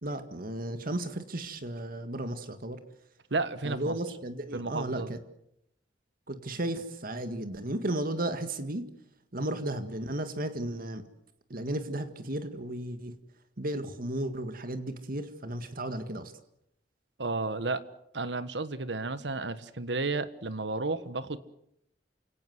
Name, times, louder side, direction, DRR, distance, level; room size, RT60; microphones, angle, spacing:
voice 1, 0.0-2.8 3.6-5.2 6.3-8.9 9.3-11.1 11.5-13.1 13.6-16.3, right 1 dB, 55° right, 9 dB, 1.9 m, -34 dB
voice 2, 3.3-3.9 4.5-5.1 17.2-17.8 18.1-21.4, right 3 dB, 80° right, 14 dB, 1.4 m, -32 dB
29.0 x 17.5 x 8.0 m, 0.78 s
head